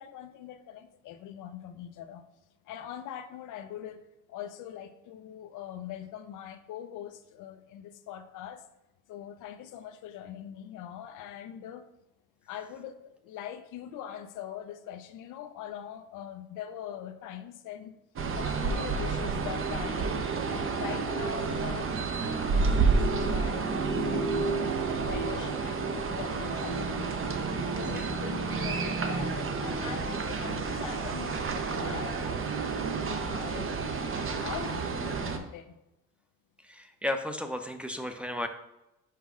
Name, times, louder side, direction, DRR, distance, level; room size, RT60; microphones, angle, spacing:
voice 1, 0.0-2.3 2.6-8.7 9.1-11.9 12.4-18.0 18.4-20.2 20.5-27.1 27.5-35.8, left 10 dB, 90° left, 8 dB, 0.6 m, -42 dB
sound 1, 18.2-35.4, right 4 dB, 45° right, 0.8 m, -30 dB
voice 2, 36.6-38.5, left 1 dB, 5° right, 5 dB, 0.6 m, -34 dB
5.8 x 4.7 x 3.7 m, 0.90 s
cardioid pair, 90°, 30 cm